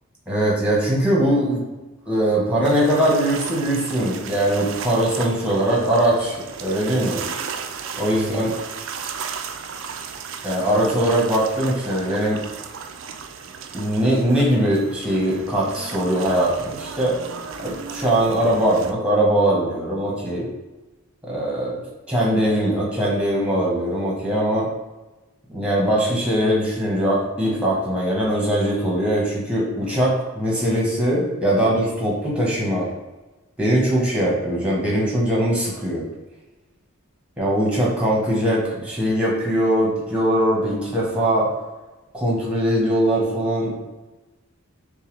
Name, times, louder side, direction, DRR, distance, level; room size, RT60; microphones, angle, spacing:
voice 1, 0.3-1.6 2.1-7.2 8.0-8.5 10.4-12.4 13.7-17.2 17.6-20.5 21.2-21.8 22.1-24.7 25.5-32.9 33.6-36.0 37.4-41.5 42.1-43.9, right 1 dB, 5° right, -4 dB, 1.1 m, -21 dB
sound 1, 2.6-18.9, right 6 dB, 65° right, 0.4 m, -35 dB
6.5 x 2.3 x 3.2 m, 1.1 s
head